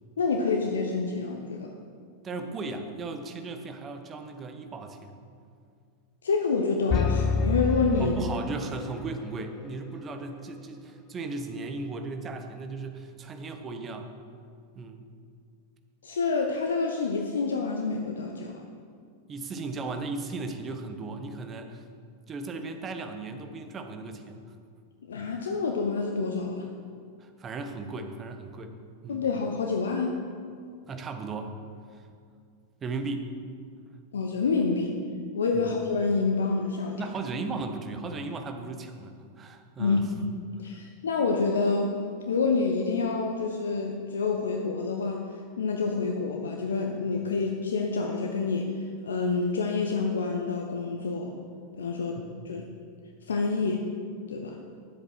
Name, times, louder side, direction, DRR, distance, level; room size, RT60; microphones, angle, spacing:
voice 1, 0.2-1.7 6.2-8.2 16.0-18.5 25.1-26.7 29.1-30.2 34.1-35.0 35.3-37.0 39.8-42.0 42.3-51.3 51.8-52.2 52.4-52.6 53.3-53.9 54.3-54.6, left 4 dB, 65° left, 2 dB, 0.8 m, -28 dB
voice 2, 2.2-5.2 8.0-14.1 14.7-15.0 19.3-21.8 22.3-24.5 27.2-28.8 29.0-29.3 30.8-31.5 31.9-32.1 32.8-33.3 35.5-35.7 37.0-40.1 52.4-52.6, right 3 dB, 25° right, 6 dB, 1.1 m, -36 dB
sound 1, 6.9-9.0, left 5 dB, 25° left, 0.4 m, -27 dB
10.5 x 7.8 x 5.9 m, 2.3 s
figure-of-eight pair, 90°, 0 cm